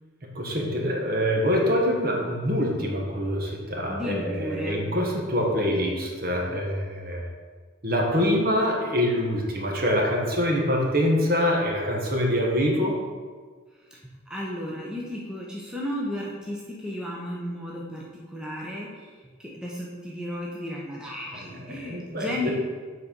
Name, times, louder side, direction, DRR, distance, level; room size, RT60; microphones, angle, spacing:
voice 1, 0.2-7.3 7.8-13.0 21.6-22.5, equal, 50° right, 0 dB, 1.1 m, -25 dB
voice 2, 3.9-4.9 13.8-14.0 14.3-22.5, left 1 dB, 5° right, -4 dB, 0.8 m, -34 dB
7.4 x 4.2 x 5.3 m, 1.5 s
head